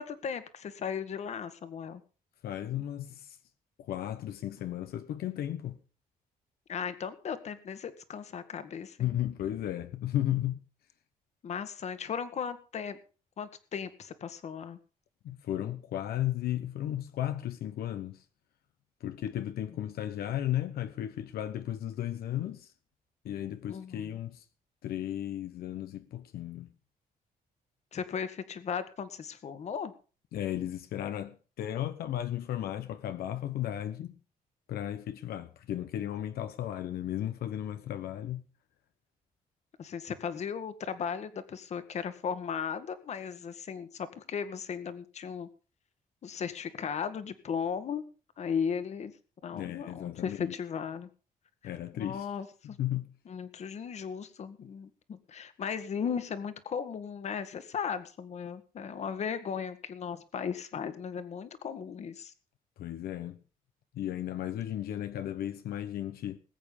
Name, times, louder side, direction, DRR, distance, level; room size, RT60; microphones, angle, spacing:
voice 1, 0.0-2.0 6.7-9.2 11.4-13.0 13.4-14.8 23.7-24.2 27.9-29.9 39.8-45.5 46.2-48.0 48.4-49.1 49.4-51.1 51.9-52.8 53.2-62.3, left 7 dB, 45° left, 1.7 m, -36 dB
voice 2, 2.4-3.4 3.8-5.8 9.0-10.6 15.2-18.2 19.0-22.7 23.2-24.4 24.8-26.7 30.3-34.2 34.7-38.4 49.5-50.5 51.6-52.3 52.8-53.1 62.8-63.4 63.9-66.4, left 12 dB, 85° left, 1.1 m, -34 dB
20.0 x 8.7 x 5.4 m
cardioid pair, 150°, 15 cm